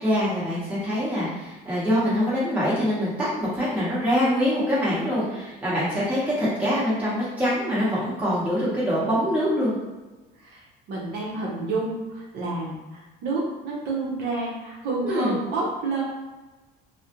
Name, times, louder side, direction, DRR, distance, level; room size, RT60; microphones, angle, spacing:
voice 1, 0.0-9.7 15.0-15.3, equal, 5° right, -9 dB, 1.0 m, -24 dB
voice 2, 10.4-16.0, right 3 dB, 55° right, -5 dB, 0.7 m, -29 dB
2.4 x 2.1 x 2.8 m, 1.2 s
cardioid pair, 145°, 20 cm